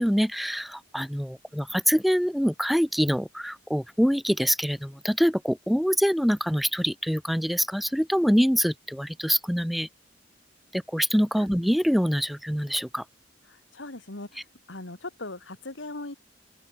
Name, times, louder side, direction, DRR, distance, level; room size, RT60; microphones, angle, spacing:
voice 1, 0.0-9.9 10.7-13.0, equal, ahead, 1.1 m, -25 dB
voice 2, 13.5-14.4 14.7-16.2, left 2 dB, 90° left, 2.5 m, -39 dB
open air
head